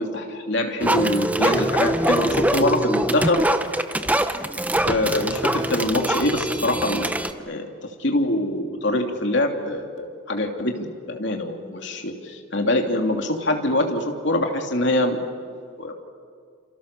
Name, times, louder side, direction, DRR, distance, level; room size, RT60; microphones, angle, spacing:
voice 1, 0.0-3.4 4.8-7.1 7.5-7.7 8.0-15.2 15.8-15.9, left 1 dB, 60° left, 3 dB, 2.9 m, -24 dB
sound 1, 0.8-7.3, right 1 dB, 5° right, 0.8 m, -23 dB
28.0 x 28.0 x 6.9 m, 2.2 s
head